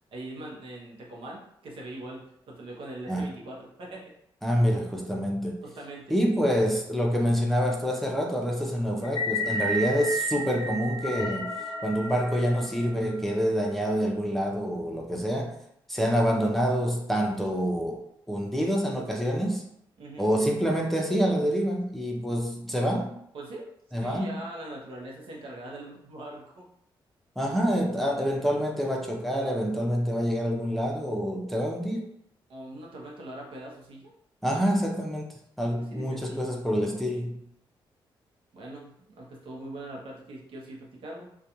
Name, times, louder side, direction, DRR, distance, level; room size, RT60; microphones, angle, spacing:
voice 1, 0.1-4.0 5.6-6.1 20.0-20.3 23.3-23.7 24.0-26.6 32.5-34.1 35.7-36.5 38.5-41.3, right 1 dB, 75° right, -2 dB, 0.7 m, -42 dB
voice 2, 4.4-5.6 6.1-11.5 11.8-15.6 15.9-18.0 18.3-19.6 20.2-23.1 23.9-24.4 27.4-32.1 34.4-35.3 35.6-37.4, equal, ahead, -2 dB, 0.5 m, -27 dB
sound 1, 9.0-13.4, equal, 55° left, 0.4 m, -32 dB
2.4 x 2.2 x 2.8 m, 0.73 s
cardioid pair, 90°, 9 cm